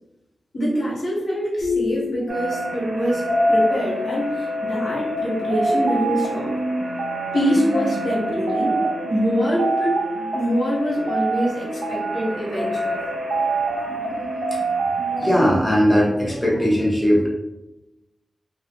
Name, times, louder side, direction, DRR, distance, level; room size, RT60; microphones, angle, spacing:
voice 1, 0.5-6.5 7.3-8.7 9.1-10.0 10.3-13.0, equal, 80° left, -5 dB, 0.9 m, -24 dB
sound 1, 1.6-3.3, left 5 dB, 65° left, 0.6 m, -29 dB
sound 2, 2.3-15.5, right 1 dB, 75° right, 0.4 m, -25 dB
voice 2, 13.4-14.2 14.5-14.6 15.1-17.3, equal, 5° left, -4 dB, 0.7 m, -20 dB
2.2 x 2.1 x 2.8 m, 0.94 s
wide cardioid pair, 95°, 0 cm